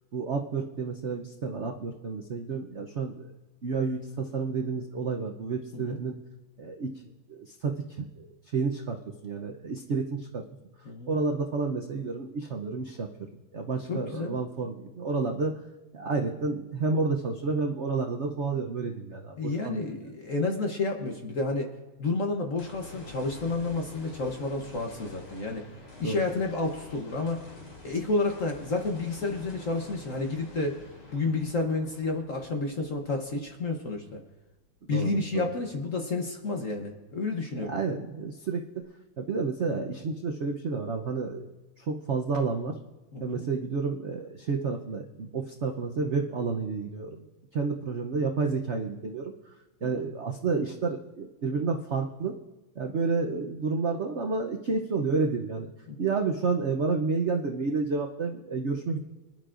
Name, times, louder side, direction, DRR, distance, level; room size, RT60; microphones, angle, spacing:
voice 1, 0.1-3.3 3.6-6.2 6.6-6.9 7.3-8.2 8.5-9.0 9.2-10.4 11.1-13.1 13.5-15.5 15.9-20.0 26.0-26.2 34.9-35.5 37.5-38.6 39.2-41.4 41.8-42.8 43.2-47.3 47.5-49.5 49.8-52.4 52.8-55.7 56.0-59.0, right 4 dB, 75° right, 2 dB, 0.6 m, -30 dB
voice 2, 13.9-14.4 19.4-21.7 22.0-25.6 26.0-27.4 27.8-30.8 31.1-34.2 34.9-37.7 43.1-43.4 49.8-50.1 55.9-56.0, left 3 dB, 50° left, 3 dB, 1.1 m, -30 dB
sound 1, 22.6-34.9 35.4-35.5 38.8-38.9, left 2 dB, 85° left, 3.8 m, -48 dB
25.0 x 11.0 x 2.5 m, 1.1 s
omnidirectional pair, 2.3 m